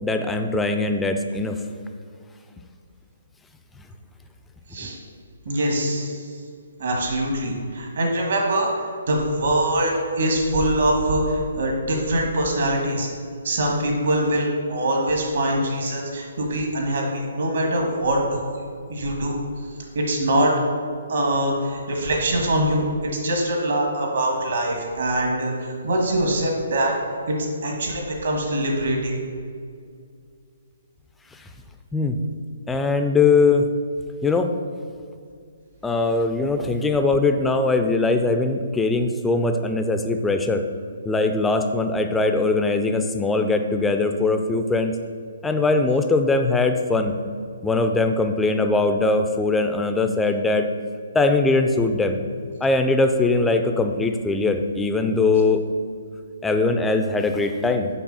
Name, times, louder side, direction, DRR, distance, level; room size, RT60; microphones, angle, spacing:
voice 1, 0.0-1.6 4.8-4.9 31.9-32.2 32.7-33.6 34.2-34.5 35.8-40.6 41.1-45.0 45.4-47.1 47.6-50.7 51.1-52.2 52.6-55.6 56.4-57.9, left 3 dB, 5° left, 6 dB, 0.3 m, -21 dB
voice 2, 5.4-6.3 6.8-13.1 13.4-18.6 18.9-19.4 19.9-20.5 21.1-22.8 23.1-26.9 27.3-27.4 27.6-29.1, right 1 dB, 70° right, 0 dB, 1.7 m, -23 dB
5.9 x 3.9 x 5.5 m, 2.3 s
hypercardioid pair, 160°, 0 cm